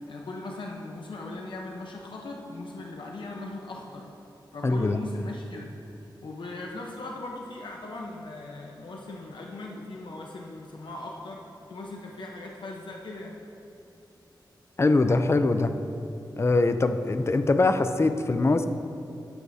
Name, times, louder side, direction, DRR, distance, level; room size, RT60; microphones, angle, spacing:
voice 1, 0.1-4.1 4.5-5.7 6.2-11.4 11.7-13.4, left 2 dB, 75° left, -1 dB, 0.9 m, -39 dB
voice 2, 4.6-5.0 14.8-15.7 16.4-18.6, left 3 dB, 35° left, 9 dB, 0.5 m, -22 dB
13.5 x 9.5 x 2.8 m, 2.8 s
wide cardioid pair, 130°, 8 cm